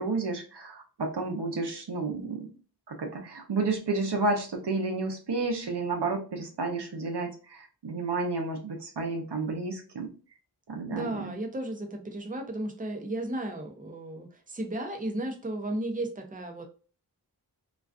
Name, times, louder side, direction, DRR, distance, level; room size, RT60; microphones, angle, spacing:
voice 1, 0.0-2.5 2.9-10.1 10.7-11.3, right 3 dB, 80° right, 3 dB, 0.6 m, -31 dB
voice 2, 10.8-16.6, right 1 dB, 20° right, 3 dB, 0.6 m, -34 dB
2.4 x 2.3 x 2.3 m, 0.37 s
wide cardioid pair, 45°, 40 cm